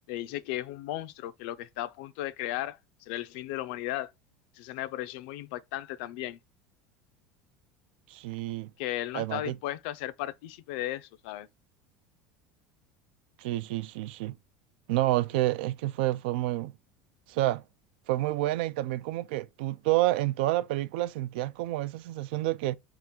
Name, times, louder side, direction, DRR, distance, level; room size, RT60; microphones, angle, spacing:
voice 1, 0.1-4.1 4.5-6.4 8.8-11.5, left 14 dB, 70° left, 0.4 m, -35 dB
voice 2, 8.1-8.7 9.1-9.6 13.4-14.4 14.9-16.7 17.3-17.6 18.1-22.8, right 16 dB, 80° right, 0.4 m, -29 dB
3.6 x 2.4 x 4.1 m
supercardioid pair, 140°, 5 cm